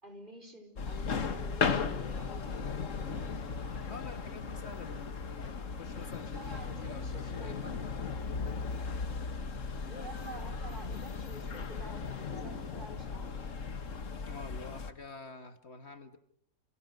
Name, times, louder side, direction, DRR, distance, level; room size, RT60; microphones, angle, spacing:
voice 1, 0.0-3.1 6.3-7.6 8.3-8.6 9.9-13.4, right 2 dB, 35° right, 5 dB, 4.6 m, -49 dB
sound 1, 0.8-14.9, left 5 dB, 65° left, 1.8 m, -36 dB
voice 2, 3.9-8.4 14.3-16.2, left 4 dB, 50° left, 9 dB, 1.7 m, -48 dB
29.0 x 28.0 x 6.6 m, 0.68 s
omnidirectional pair, 1.4 m